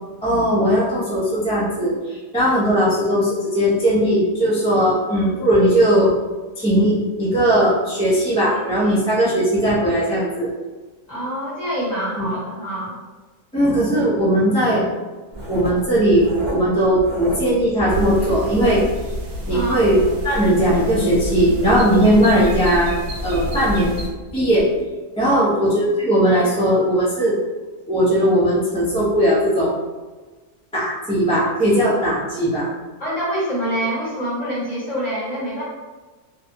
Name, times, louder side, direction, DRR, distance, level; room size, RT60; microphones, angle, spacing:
voice 1, 0.2-6.1 6.6-10.5 12.2-12.3 13.5-14.8 15.5-18.8 19.5-20.0 20.2-22.9 23.2-23.9 24.3-24.7 25.2-27.4 27.9-29.7 30.7-32.7, equal, 5° left, -10 dB, 0.5 m, -18 dB
voice 2, 11.1-12.9 19.5-19.8 25.3-25.7 33.0-35.6, equal, 30° left, -9 dB, 1.1 m, -26 dB
Writing, 15.3-17.6 17.9-20.4 20.8-24.1 24.5-24.7, right 1 dB, 30° right, 0.8 m, -33 dB
sound 1, 17.9-24.1, equal, 75° right, 1.0 m, -29 dB
2.6 x 2.3 x 2.7 m, 1.3 s
omnidirectional pair, 1.4 m